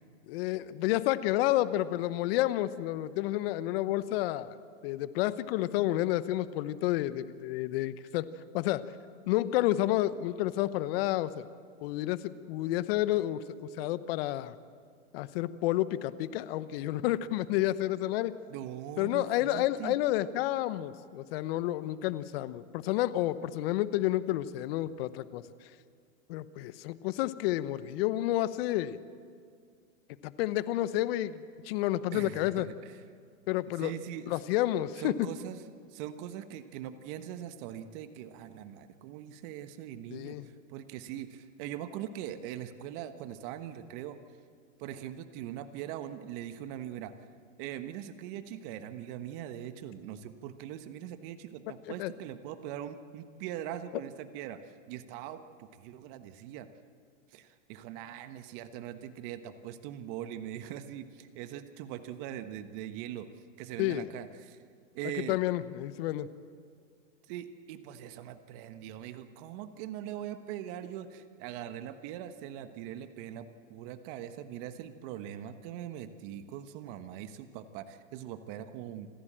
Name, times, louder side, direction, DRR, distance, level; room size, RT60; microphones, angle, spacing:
voice 1, 0.3-4.5 4.8-8.3 8.5-8.9 9.3-11.4 11.8-14.6 15.1-18.3 19.0-25.4 26.3-29.0 30.2-32.7 33.5-33.9 34.3-35.1 40.1-40.5 52.0-52.1 63.8-64.1 65.3-66.3, left 15 dB, 50° left, 15 dB, 1.0 m, -30 dB
voice 2, 18.5-20.0 32.1-33.0 33.8-34.4 35.0-35.6 35.9-44.2 44.8-47.1 47.6-54.6 54.9-56.7 57.3-63.3 63.6-64.6 64.9-65.4 67.3-79.1, right 11 dB, 45° right, 10 dB, 1.3 m, -41 dB
27.0 x 14.5 x 7.6 m, 2.2 s
hypercardioid pair, 130°, 39 cm